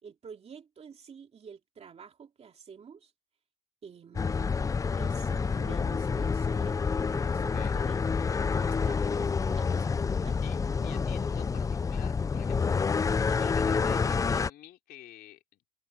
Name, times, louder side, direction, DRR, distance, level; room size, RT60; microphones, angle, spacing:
voice 1, 0.0-3.1 3.8-4.6 4.9-6.8 7.1-7.9 8.6-9.9 10.2-10.4, right 6 dB, 40° right, 2.6 m, -49 dB
sound 1, 4.2-14.5, left 5 dB, 20° left, 0.4 m, -28 dB
voice 2, 10.8-15.6, left 12 dB, 70° left, 3.4 m, -49 dB
cardioid pair, 110°, 17 cm